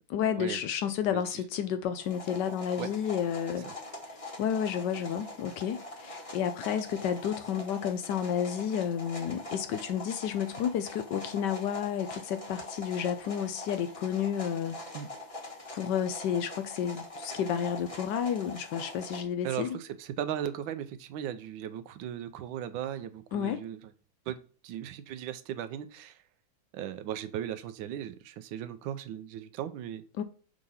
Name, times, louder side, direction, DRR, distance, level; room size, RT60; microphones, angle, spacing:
voice 1, 0.1-3.7 4.4-14.8 15.7-19.8 23.3-23.6 30.2-30.3, left 8 dB, 75° left, 1.0 m, -31 dB
sound 1, 2.0-19.2, left 1 dB, 25° left, 0.8 m, -43 dB
voice 2, 19.4-23.8 24.3-24.4 24.6-26.2 26.7-30.0, right 10 dB, 75° right, 1.3 m, -37 dB
4.9 x 3.8 x 5.5 m
omnidirectional pair, 2.3 m